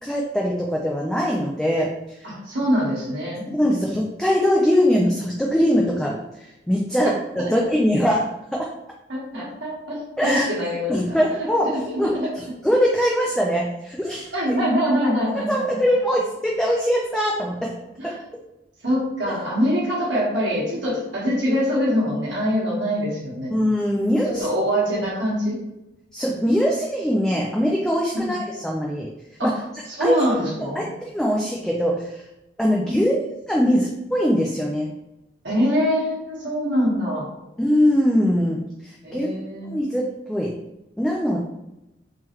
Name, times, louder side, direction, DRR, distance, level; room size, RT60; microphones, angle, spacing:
voice 1, 0.0-2.3 3.5-8.7 10.2-10.5 10.9-11.7 12.0-14.5 15.3-17.7 18.0-18.1 23.5-24.5 26.1-29.1 29.4-29.5 30.0-30.2 30.8-32.2 32.6-34.9 37.6-39.3 39.7-40.5 41.0-41.4, equal, 5° left, -2 dB, 0.3 m, -22 dB
voice 2, 2.2-3.5 7.4-7.5 9.1-11.2 11.6-12.3 14.3-15.8 18.0-18.1 18.8-23.5 24.3-25.6 28.1-28.3 29.4-29.6 29.8-30.8 32.6-33.1 35.4-37.3 39.0-39.8, equal, 70° right, -5 dB, 1.4 m, -24 dB
3.6 x 3.1 x 3.0 m, 0.94 s
head